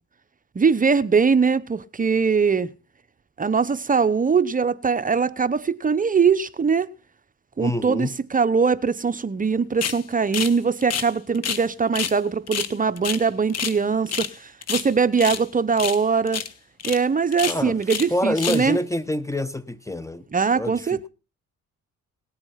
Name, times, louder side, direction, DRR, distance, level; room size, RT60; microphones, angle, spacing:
voice 1, 0.5-2.7 3.4-6.9 7.6-16.4 16.8-18.8 20.3-21.1, right 5 dB, 25° right, 0.8 m, -21 dB
voice 2, 7.6-8.1 17.5-17.8 18.1-20.2 20.5-21.1, left 1 dB, 10° left, 0.8 m, -26 dB
sound 1, 9.8-10.0 10.3-10.6 10.8-11.6 11.9-12.2 12.5-13.8 14.1-14.3 14.6-15.4 15.8-16.0 16.3-16.5 16.8-17.0 17.3-18.1 18.4-18.7, left 8 dB, 55° left, 1.4 m, -28 dB
18.5 x 8.8 x 5.7 m
cardioid pair, 90°, 30 cm